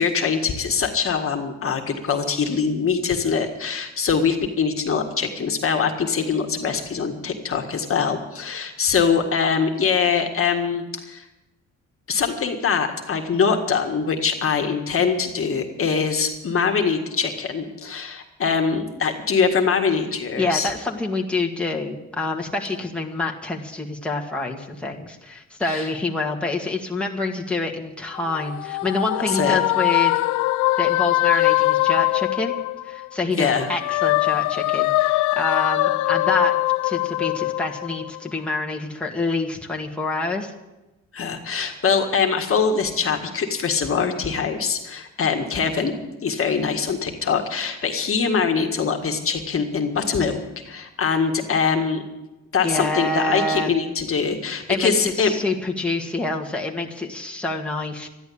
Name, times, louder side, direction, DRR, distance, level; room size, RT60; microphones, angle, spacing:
voice 1, 0.0-11.2 12.1-20.7 25.6-25.9 29.3-29.6 33.4-33.7 41.1-46.0 46.2-50.4 50.7-52.0 52.5-55.3, left 6 dB, 45° left, 4 dB, 1.8 m, -23 dB
voice 2, 20.4-30.1 30.8-32.5 32.8-36.6 36.8-40.5 52.6-53.7 54.7-58.1, left 3 dB, 5° left, -1 dB, 1.9 m, -26 dB
sound 1, 28.2-33.1 33.5-38.3, left 19 dB, 80° left, 0.5 m, -22 dB
13.0 x 11.0 x 8.6 m, 1.0 s
cardioid pair, 90°, 30 cm